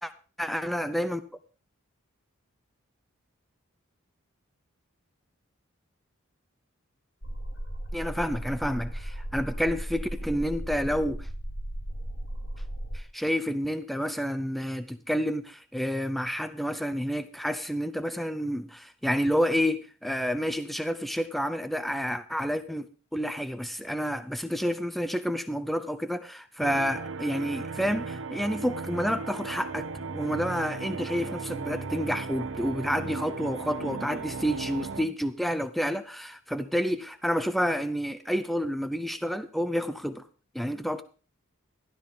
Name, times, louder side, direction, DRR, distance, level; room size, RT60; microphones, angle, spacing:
voice 1, 0.4-1.2 7.9-11.3 12.9-29.9 30.1-40.3 40.5-41.0, equal, ahead, 0.5 m, -29 dB
sound 1, 7.2-13.0, right 1 dB, 80° left, 6.6 m, -36 dB
sound 2, 26.6-35.0, right 4 dB, 60° right, 0.6 m, -36 dB
12.5 x 12.5 x 3.6 m
head